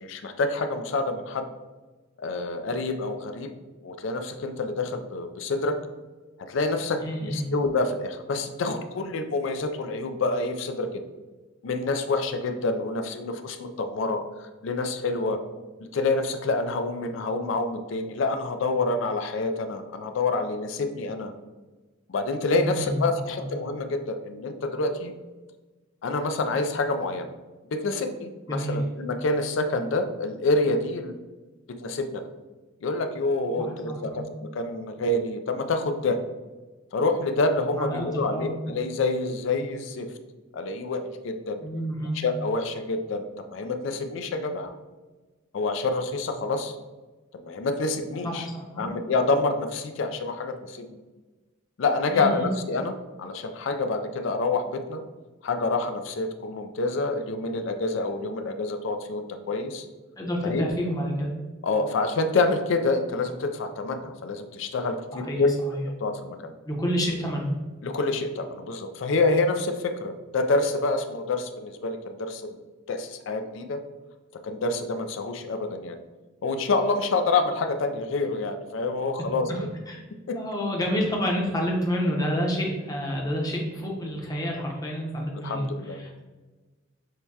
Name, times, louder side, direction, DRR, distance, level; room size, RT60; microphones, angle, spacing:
voice 1, 0.0-1.5 2.2-3.5 3.8-5.8 6.5-11.0 11.6-15.4 15.9-21.3 22.1-25.1 26.0-27.3 27.7-31.1 31.8-32.3 32.8-34.2 34.5-36.2 36.9-40.1 40.5-41.6 42.1-43.2 43.5-44.7 45.5-46.7 47.3-48.5 48.8-51.0 51.8-55.0 55.4-59.9 60.4-60.6 61.6-65.5 66.0-66.5 67.8-72.6 72.9-73.8 74.4-76.0 76.4-79.5 80.3-80.4 85.4-86.0, left 3 dB, 65° left, 7 dB, 0.4 m, -27 dB
voice 2, 7.0-7.5 22.6-23.0 28.5-28.8 33.6-34.2 37.8-38.5 41.6-42.2 48.2-48.9 52.1-52.5 60.2-61.3 65.1-65.8 66.6-67.5 79.2-80.0 80.3-86.2, equal, 20° left, -1 dB, 0.7 m, -29 dB
6.5 x 2.2 x 2.7 m, 1.2 s
head